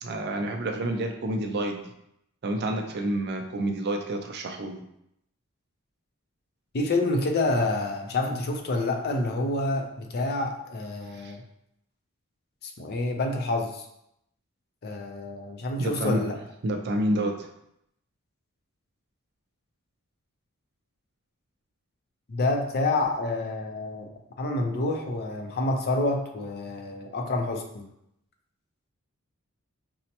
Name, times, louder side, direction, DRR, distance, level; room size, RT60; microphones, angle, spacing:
voice 1, 0.0-1.8 2.4-4.8 11.1-11.3 15.8-16.2 16.6-17.5, right 1 dB, 50° right, 3 dB, 0.4 m, -29 dB
voice 2, 6.7-11.4 12.6-13.9 14.8-16.4 22.3-24.1 24.4-27.9, left 2 dB, 45° left, 3 dB, 0.5 m, -28 dB
5.2 x 2.1 x 2.8 m, 0.79 s
head